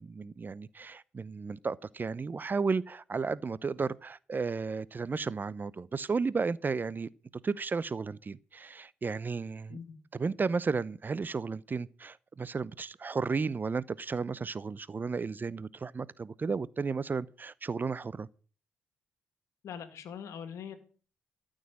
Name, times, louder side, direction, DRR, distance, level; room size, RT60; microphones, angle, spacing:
voice 1, 0.0-7.1 7.4-9.8 10.1-18.3, right 4 dB, 35° right, 0.7 m, -33 dB
voice 2, 19.6-20.8, left 7 dB, 65° left, 1.9 m, -42 dB
13.5 x 6.4 x 8.5 m
hypercardioid pair, 45°, 5 cm